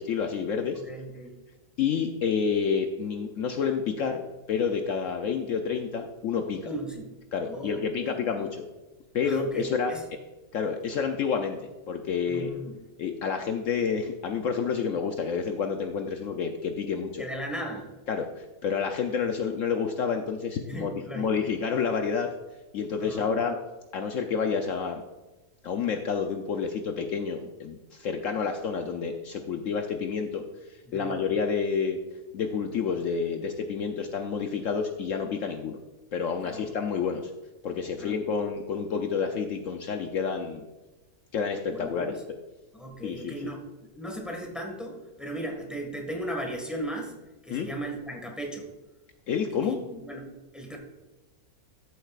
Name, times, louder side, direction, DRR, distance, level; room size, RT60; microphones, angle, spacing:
voice 1, 0.0-0.8 1.8-6.6 7.3-8.7 9.1-9.9 10.5-11.6 11.9-12.5 13.0-17.2 18.1-22.3 22.7-23.5 23.9-25.0 25.6-32.0 32.3-35.8 36.1-37.3 37.6-40.6 41.3-42.1 43.0-43.5 47.5-47.7 49.3-49.8, left 6 dB, 65° left, 5 dB, 1.0 m, -29 dB
voice 2, 0.7-1.3 6.6-7.1 7.4-8.4 9.2-10.0 12.3-12.8 17.2-17.9 20.7-21.3 23.0-23.4 30.9-31.2 36.4-36.7 38.0-38.4 41.7-42.2 42.7-43.7 43.9-47.1 47.4-48.7 49.6-50.8, right 1 dB, ahead, 1 dB, 1.5 m, -37 dB
13.0 x 7.9 x 2.4 m, 1.1 s
omnidirectional pair, 1.6 m